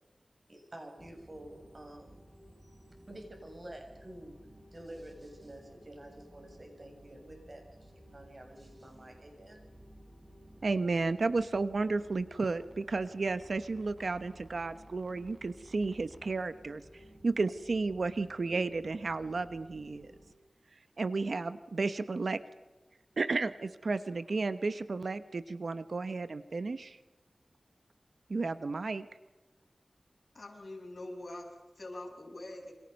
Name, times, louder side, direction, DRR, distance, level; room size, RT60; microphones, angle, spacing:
voice 1, 0.5-2.2 2.6-2.8 3.1-4.4 4.7-9.6, right 1 dB, 40° right, 3 dB, 7.3 m, -49 dB
sound 1, 1.0-20.3, equal, 20° right, 4.0 m, -56 dB
voice 2, 10.6-20.1 21.0-22.4 23.2-27.0 28.3-29.1, right 3 dB, 70° right, 12 dB, 1.1 m, -33 dB
voice 3, 30.3-32.7, left 1 dB, 65° left, 2 dB, 6.7 m, -44 dB
28.5 x 26.5 x 5.4 m, 1.2 s
wide cardioid pair, 85°, 0 cm